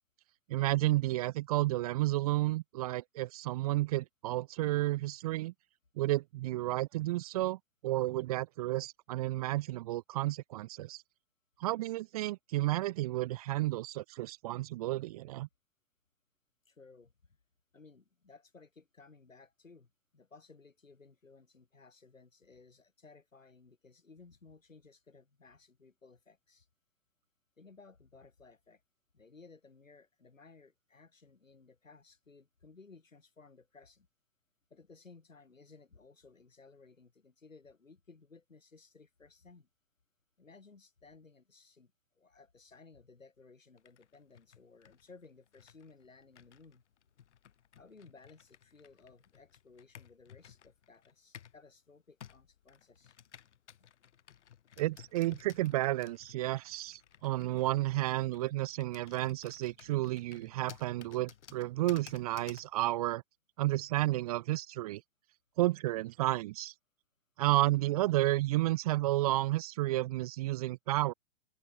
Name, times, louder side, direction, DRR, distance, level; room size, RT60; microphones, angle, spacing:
voice 1, 0.5-5.5 6.0-11.0 11.6-15.5 54.8-63.2 63.6-65.0 65.6-66.7 67.4-71.1, right 17 dB, 30° right, 0.4 m, -31 dB
voice 2, 16.7-17.1 17.7-26.7 27.6-28.8 29.1-34.1 34.7-39.7 40.4-46.8 47.8-53.2 53.8-53.9, left 4 dB, 85° left, 6.1 m, -58 dB
Computer keyboard, 43.8-51.6 52.2-62.7, left 9 dB, 65° left, 5.6 m, -56 dB
open air
figure-of-eight pair, 115°, 38 cm